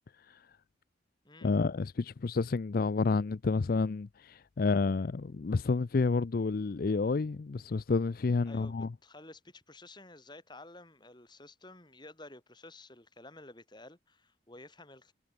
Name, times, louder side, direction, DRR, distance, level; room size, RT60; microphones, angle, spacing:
voice 1, 1.4-8.9, left 4 dB, 50° left, 0.4 m, -30 dB
voice 2, 8.5-15.1, left 2 dB, 25° left, 4.8 m, -52 dB
head